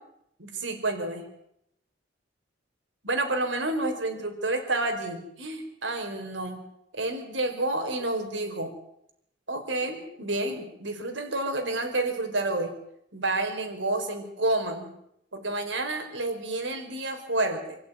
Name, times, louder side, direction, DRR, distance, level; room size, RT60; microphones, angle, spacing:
voice 1, 0.4-1.2 3.0-6.6 6.9-8.7 9.5-12.7 13.1-14.9 15.3-17.8, right 2 dB, 85° right, 5 dB, 4.8 m, -29 dB
27.0 x 16.0 x 9.5 m, 0.78 s
head